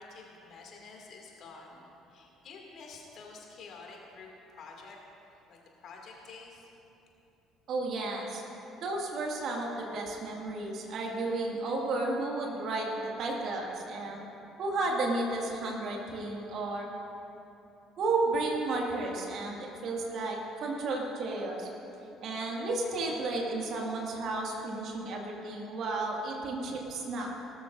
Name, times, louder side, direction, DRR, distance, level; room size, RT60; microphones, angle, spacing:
voice 1, 0.0-5.0 5.3-6.7, left 4 dB, 50° left, 0 dB, 2.4 m, -49 dB
voice 2, 7.7-8.4 8.8-14.3 14.6-16.9 18.0-21.7 22.2-27.4, right 2 dB, 50° right, -1 dB, 2.0 m, -33 dB
18.5 x 13.0 x 2.6 m, 2.9 s
figure-of-eight pair, 50°, 0 cm